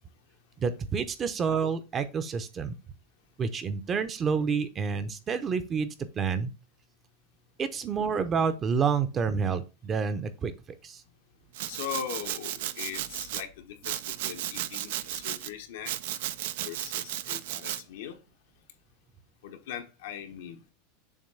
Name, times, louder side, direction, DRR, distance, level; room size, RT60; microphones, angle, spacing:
voice 1, 0.6-2.7 3.4-5.9 6.1-6.5 7.6-10.5 10.8-11.0, right 6 dB, 25° right, 0.7 m, -28 dB
Domestic sounds home sounds, 11.5-13.4 13.8-15.5 15.9-17.8, right 13 dB, 70° right, 0.5 m, -34 dB
voice 2, 11.7-15.9 16.6-18.2 19.4-20.7, left 9 dB, 75° left, 1.2 m, -40 dB
7.2 x 2.9 x 5.6 m
supercardioid pair, 150°, 0 cm